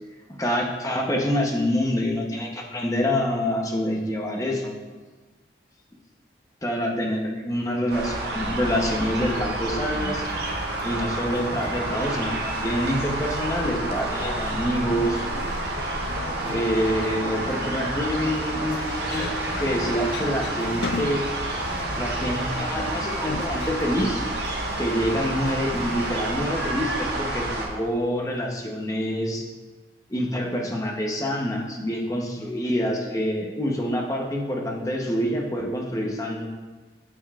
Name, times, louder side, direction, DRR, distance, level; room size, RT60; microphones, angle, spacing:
voice 1, 0.3-4.8 6.6-10.3 10.8-15.2 16.5-21.3 22.0-24.2 24.8-29.5 30.1-36.5, equal, 20° left, 0 dB, 0.8 m, -26 dB
sound 1, 7.9-27.7, right 2 dB, 65° right, 1.1 m, -29 dB
sound 2, 8.8-26.4, left 4 dB, 65° left, 0.3 m, -40 dB
8.8 x 6.9 x 2.4 m, 1.3 s
head